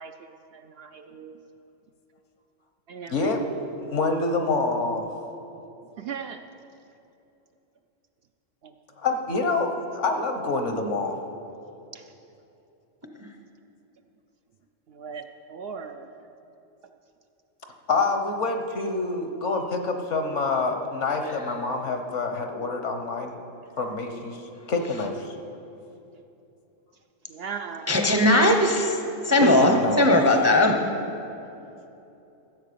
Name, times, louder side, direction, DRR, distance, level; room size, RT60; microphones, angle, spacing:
voice 1, 0.0-1.4 2.9-3.6 6.0-6.4 11.9-12.0 14.9-15.2 15.5-16.1 27.3-28.0, right 6 dB, 60° right, 6 dB, 0.7 m, -38 dB
voice 2, 3.1-3.4 3.7-5.1 9.0-11.2 17.9-23.3 23.8-24.4 24.7-25.3 29.4-30.1, left 3 dB, 70° left, 5 dB, 1.4 m, -26 dB
voice 3, 27.9-29.0 29.2-30.9, left 1 dB, 15° right, 4 dB, 0.6 m, -19 dB
14.0 x 8.1 x 6.8 m, 2.8 s
omnidirectional pair, 1.3 m